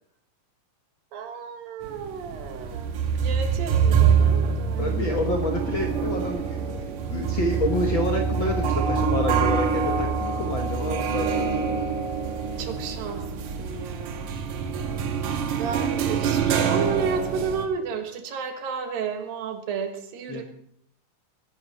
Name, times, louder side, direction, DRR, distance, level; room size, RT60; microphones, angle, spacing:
voice 1, 1.1-5.0 12.6-14.3 15.2-20.4, right 6 dB, 85° right, 5 dB, 3.3 m, -32 dB
sound 1, 1.8-17.6, right 6 dB, 65° right, 2.4 m, -25 dB
voice 2, 4.8-11.8 20.3-20.4, left 1 dB, 60° left, 2 dB, 1.3 m, -28 dB
21.0 x 11.0 x 4.2 m, 0.70 s
omnidirectional pair, 4.0 m